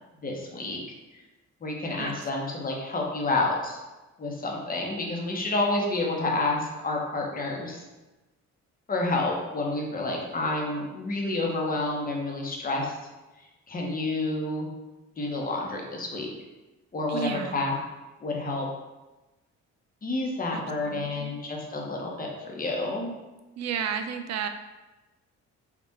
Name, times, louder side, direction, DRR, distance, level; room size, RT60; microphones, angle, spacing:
voice 1, 0.2-0.8 1.6-3.8 4.2-7.8 8.9-13.0 13.7-14.7 15.2-16.3 16.9-17.7 18.2-18.7 20.0-23.2, left 2 dB, 30° left, -1 dB, 0.9 m, -29 dB
voice 2, 2.0-2.3 17.1-17.6 20.5-21.4 23.6-24.5, right 7 dB, 65° right, 7 dB, 0.4 m, -33 dB
3.6 x 2.4 x 4.0 m, 1.1 s
cardioid pair, 95°, 29 cm